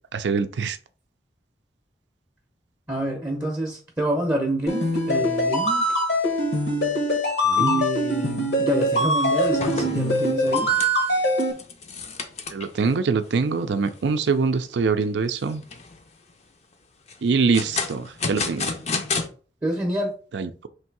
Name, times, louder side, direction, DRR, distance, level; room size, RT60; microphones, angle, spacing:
voice 1, 0.1-0.8 7.5-7.8 12.5-15.6 17.2-18.7 20.3-20.7, right 4 dB, 80° right, 0.4 m, -24 dB
voice 2, 2.9-5.9 7.6-10.7 19.6-20.1, right 1 dB, 15° right, 0.6 m, -27 dB
sound 1, 4.7-11.5, equal, 70° left, 1.0 m, -23 dB
sound 2, 8.6-8.8 9.1-12.8 13.3-13.4 13.9-14.0 14.4-14.9 15.4-16.0 17.1-19.3, left 4 dB, 40° left, 0.6 m, -31 dB
3.3 x 2.7 x 4.6 m
head